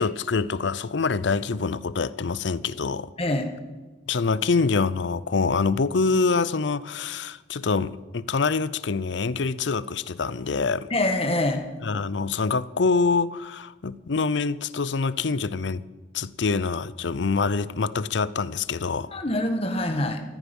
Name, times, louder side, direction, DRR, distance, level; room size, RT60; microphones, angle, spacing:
voice 1, 0.0-3.1 4.1-10.9 11.8-15.8 16.1-19.1, left 4 dB, 70° left, 18 dB, 0.6 m, -25 dB
voice 2, 3.2-3.5 10.9-11.6 19.1-20.2, left 1 dB, 30° left, 5 dB, 1.6 m, -25 dB
14.5 x 14.0 x 5.4 m, 1.2 s
head